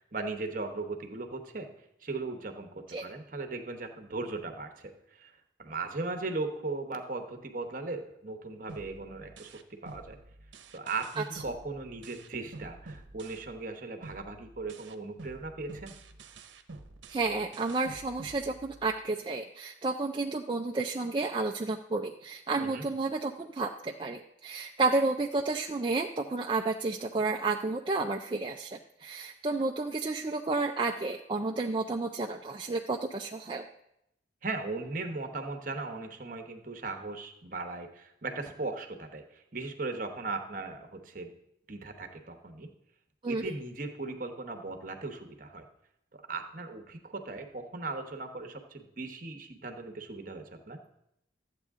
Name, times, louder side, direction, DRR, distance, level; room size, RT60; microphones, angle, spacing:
voice 1, 0.0-1.7 2.0-9.5 9.8-10.2 10.7-15.9 22.6-22.8 34.4-41.3 41.7-42.7 43.3-45.7 46.3-50.8, right 3 dB, 45° right, 6 dB, 1.0 m, -38 dB
sound 1, 8.7-13.7 14.0-19.0, right 2 dB, 70° right, 0.9 m, -49 dB
voice 2, 17.1-33.7 43.2-43.4, right 3 dB, 25° right, 2 dB, 0.4 m, -31 dB
13.0 x 8.3 x 3.6 m, 0.81 s
head